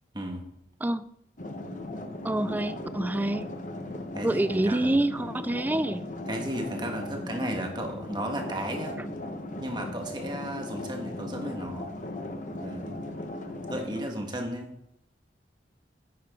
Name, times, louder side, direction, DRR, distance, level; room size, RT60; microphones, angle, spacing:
voice 1, 0.1-0.5 4.1-5.0 6.3-9.0 9.6-12.0 12.6-13.0 13.7-14.7, right 1 dB, 25° right, 3 dB, 1.5 m, -34 dB
sound 1, 1.4-14.0, left 1 dB, 45° left, 0.9 m, -37 dB
voice 2, 2.2-3.5 4.2-6.1 9.0-9.1, right 1 dB, 10° right, 14 dB, 0.3 m, -27 dB
10.0 x 8.6 x 3.7 m, 0.81 s
head